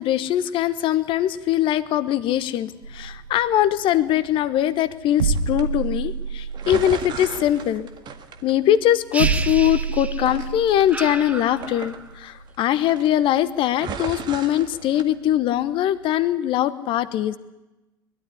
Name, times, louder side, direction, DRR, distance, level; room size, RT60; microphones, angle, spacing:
voice 1, 0.0-7.9 8.4-17.4, left 12 dB, 45° left, 15 dB, 1.1 m, -22 dB
sound 1, 2.8-16.2, right 5 dB, 80° right, 1.3 m, -31 dB
sound 2, 5.3-5.6 6.5-8.9 9.2-9.9 10.2-12.6 12.8-13.3 13.7-15.0, right 7 dB, 40° right, 1.8 m, -36 dB
sound 3, 9.1-10.5 10.9-12.2, right 3 dB, 10° right, 1.0 m, -32 dB
21.0 x 12.5 x 10.0 m, 1.0 s
figure-of-eight pair, 75°, 12 cm